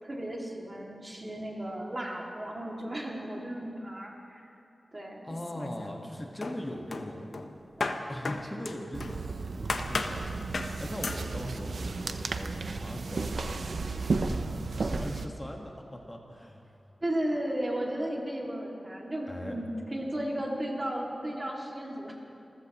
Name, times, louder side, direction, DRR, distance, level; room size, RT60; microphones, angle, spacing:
voice 1, 0.0-4.5 4.9-5.3 17.0-22.1, right 1 dB, 30° right, -1 dB, 2.4 m, -34 dB
voice 2, 5.2-7.4 8.1-9.6 9.9-10.3 10.8-14.5 14.8-16.6 19.3-19.6, left 1 dB, 15° left, 1 dB, 1.5 m, -40 dB
sound 1, 5.3-6.1 6.4-9.2 9.7-10.2 10.5-10.8 11.0-11.3, left 3 dB, 70° left, 0.9 m, -35 dB
sound 2, 8.9-15.3, right 3 dB, 70° right, 0.7 m, -33 dB
27.5 x 15.0 x 3.1 m, 2.8 s
wide cardioid pair, 115°, 0 cm